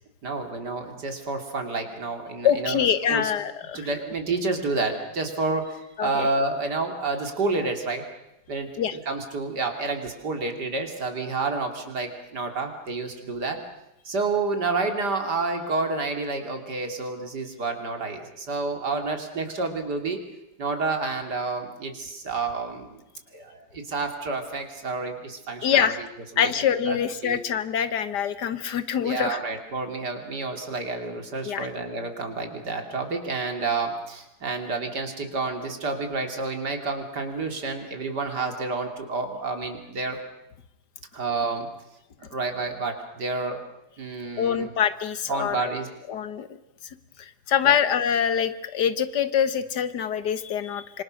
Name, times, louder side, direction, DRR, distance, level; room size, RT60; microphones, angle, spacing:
voice 1, 0.2-3.3 3.7-8.0 8.5-8.7 9.1-13.6 14.1-20.2 20.6-23.0 23.3-26.1 26.4-27.0 27.2-27.4 29.0-40.2 41.1-41.7 42.2-43.6 44.0-44.7 45.3-45.9 47.6-47.8, right 3 dB, 90° right, 5 dB, 3.5 m, -29 dB
voice 2, 2.4-3.9 6.0-6.3 8.8-9.0 25.6-26.0 26.4-29.4 31.5-31.7 44.4-45.7 46.1-46.5 46.8-51.0, left 8 dB, 85° left, 13 dB, 1.8 m, -25 dB
26.0 x 25.0 x 6.5 m, 0.90 s
omnidirectional pair, 1.7 m